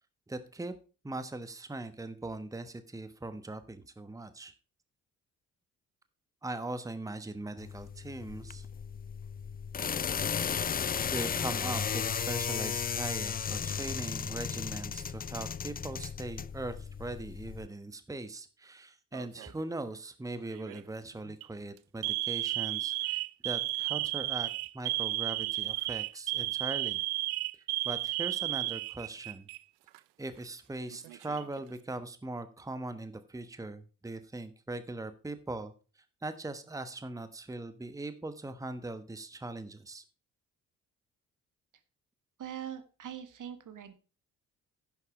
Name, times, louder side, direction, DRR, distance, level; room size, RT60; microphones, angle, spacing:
voice 1, 0.3-0.7 1.0-4.5 6.4-8.7 11.1-24.5 24.7-27.0 27.8-29.5 30.2-35.7 36.2-40.0, right 2 dB, 10° right, 11 dB, 1.1 m, -40 dB
sound 1, 7.6-17.7, left 7 dB, 25° left, 0.5 m, -35 dB
Alarm, 19.1-19.6 20.5-20.8 21.3-21.5 22.0-29.6 29.9-30.0 30.9-31.6, right 20 dB, 75° right, 0.5 m, -33 dB
voice 2, 42.4-43.9, right 10 dB, 50° right, 11 dB, 1.5 m, -42 dB
10.5 x 7.2 x 4.8 m, 0.35 s
hypercardioid pair, 50°, 38 cm